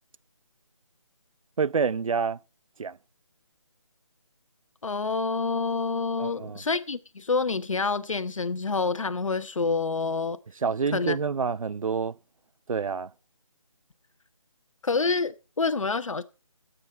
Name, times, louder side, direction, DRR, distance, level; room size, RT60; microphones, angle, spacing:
voice 1, 1.6-2.4 2.8-3.0 6.2-6.6 10.6-12.2 12.7-13.1, right 5 dB, 90° right, 0.5 m, -27 dB
voice 2, 4.8-10.4 10.9-11.2 14.8-16.2, left 4 dB, 75° left, 1.1 m, -27 dB
16.5 x 8.5 x 4.3 m
figure-of-eight pair, 175°, 17 cm